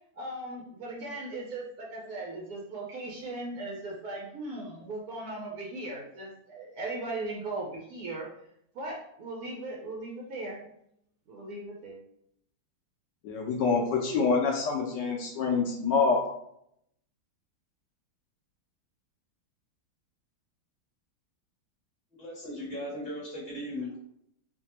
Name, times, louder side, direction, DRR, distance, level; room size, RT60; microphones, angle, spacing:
voice 1, 0.2-8.3 8.7-10.7 11.3-12.0, right 2 dB, 75° right, -2 dB, 0.8 m, -38 dB
voice 2, 13.2-16.2, left 4 dB, 75° left, 0 dB, 1.0 m, -26 dB
voice 3, 22.2-24.0, left 1 dB, 25° left, -5 dB, 1.2 m, -37 dB
4.8 x 2.2 x 2.9 m, 0.74 s
omnidirectional pair, 2.4 m